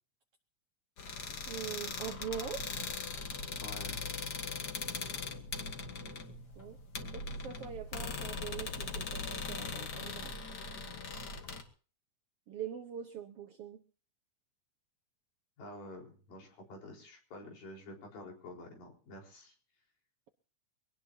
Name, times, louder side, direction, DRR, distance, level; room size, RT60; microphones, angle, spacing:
sound 1, 1.0-11.6, left 4 dB, 45° left, 1.5 m, -40 dB
voice 1, 1.5-2.7 6.0-6.2 6.6-6.8 7.1-10.3 12.5-13.8, right 8 dB, 70° right, 7 dB, 1.4 m, -43 dB
voice 2, 3.6-4.1 15.6-19.5, left 1 dB, 90° left, 1 dB, 6.1 m, -49 dB
23.5 x 18.0 x 2.8 m, 0.41 s
omnidirectional pair, 3.8 m